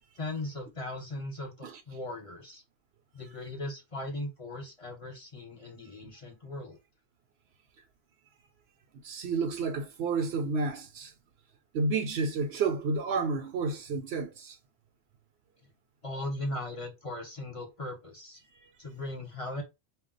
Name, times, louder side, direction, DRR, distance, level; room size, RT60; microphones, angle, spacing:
voice 1, 0.2-2.6 3.1-6.8 16.0-18.4 18.8-19.6, left 1 dB, 35° left, 0.9 m, -38 dB
voice 2, 9.0-11.1 11.7-14.6, right 4 dB, 70° right, 0.8 m, -30 dB
2.3 x 2.3 x 3.7 m
omnidirectional pair, 1.1 m